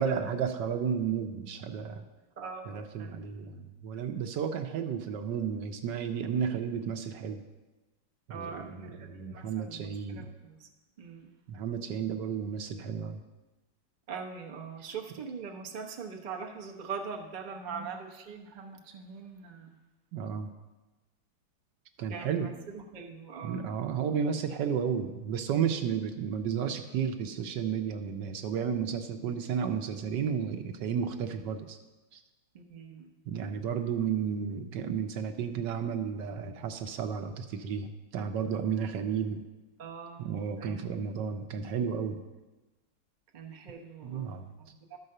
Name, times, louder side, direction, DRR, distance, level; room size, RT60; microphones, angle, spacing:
voice 1, 0.0-2.0 2.7-7.4 8.3-10.3 11.5-13.2 17.7-17.9 20.1-20.5 22.0-22.5 23.4-31.8 32.1-32.2 33.3-39.4 40.2-42.2 44.0-44.5, right 7 dB, 70° right, 6 dB, 1.3 m, -32 dB
voice 2, 2.4-3.3 8.3-10.7 11.0-11.3 14.1-19.8 22.1-23.6 32.5-33.1 39.8-40.3 40.6-40.8 43.3-45.0, right 5 dB, 40° right, 1 dB, 0.6 m, -42 dB
12.5 x 4.8 x 6.6 m, 1.1 s
omnidirectional pair, 2.1 m